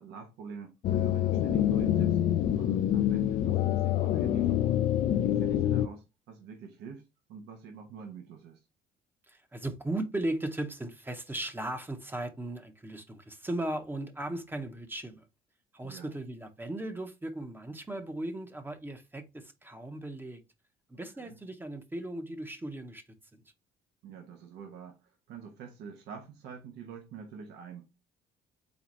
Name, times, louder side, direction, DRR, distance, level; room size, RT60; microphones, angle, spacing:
voice 1, 0.0-4.8 5.2-7.0 7.3-8.6 15.8-16.1 21.2-21.4 24.0-28.0, right 6 dB, 80° right, 1.0 m, -46 dB
sound 1, 0.8-5.9, left 11 dB, 55° left, 0.4 m, -26 dB
voice 2, 9.3-15.2 15.7-20.4 20.9-23.0 23.3-23.4, right 1 dB, 10° right, 0.8 m, -37 dB
4.1 x 3.9 x 3.0 m
cardioid pair, 110°, 17 cm